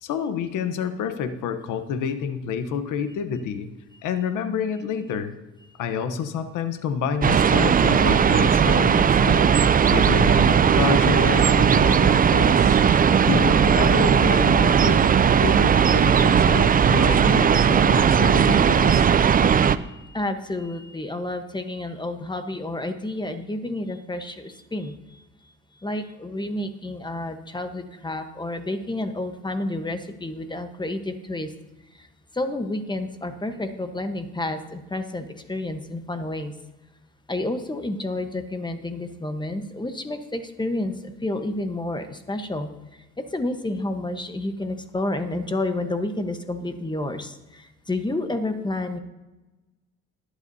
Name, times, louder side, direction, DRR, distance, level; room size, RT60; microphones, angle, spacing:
voice 1, 0.0-3.7 4.0-5.3 5.8-12.8 13.2-19.1, left 7 dB, 90° left, 9 dB, 1.0 m, -28 dB
sound 1, 7.2-19.8, right 7 dB, 30° right, 0.4 m, -17 dB
voice 2, 19.7-25.2 25.8-31.5 31.9-32.1 32.3-36.5 37.3-49.0, left 2 dB, 15° left, 7 dB, 1.1 m, -30 dB
21.0 x 8.1 x 2.7 m, 1.1 s
cardioid pair, 90°, 30 cm